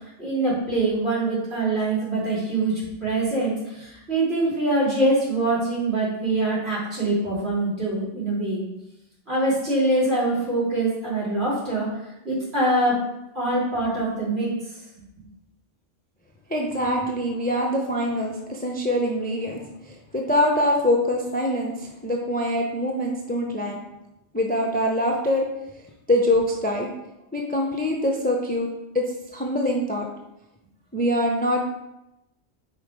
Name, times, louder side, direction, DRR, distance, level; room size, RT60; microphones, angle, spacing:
voice 1, 0.2-8.6 9.3-11.9 12.2-13.0 13.3-14.5, right 2 dB, 65° right, -6 dB, 3.0 m, -24 dB
voice 2, 16.5-23.8 24.3-25.4 26.1-26.9 27.3-28.7 28.9-29.0 29.3-30.1 30.9-31.6, left 1 dB, 10° left, 0 dB, 0.5 m, -24 dB
5.5 x 4.5 x 4.8 m, 0.89 s
omnidirectional pair, 1.2 m